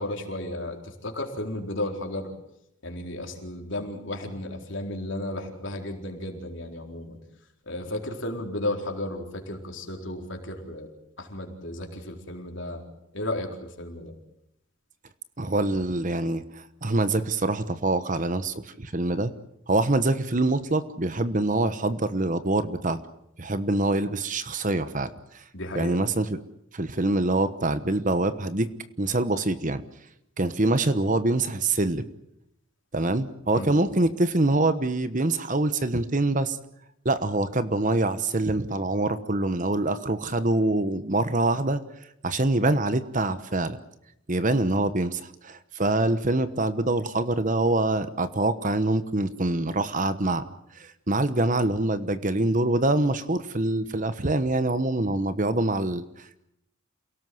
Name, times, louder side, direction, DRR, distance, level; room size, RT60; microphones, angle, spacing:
voice 1, 0.0-2.3 2.8-7.2 7.7-10.9 11.2-12.8 13.1-14.1 25.5-26.0 33.5-33.7, left 1 dB, 55° left, 3 dB, 4.3 m, -34 dB
voice 2, 15.4-19.3 19.7-23.0 23.4-25.1 25.7-26.3 26.7-28.7 29.0-29.8 30.4-32.0 32.9-36.6 37.0-41.8 42.2-43.8 44.3-50.4 50.8-56.0, right 2 dB, 35° right, 12 dB, 1.1 m, -25 dB
28.5 x 18.0 x 7.9 m, 0.80 s
head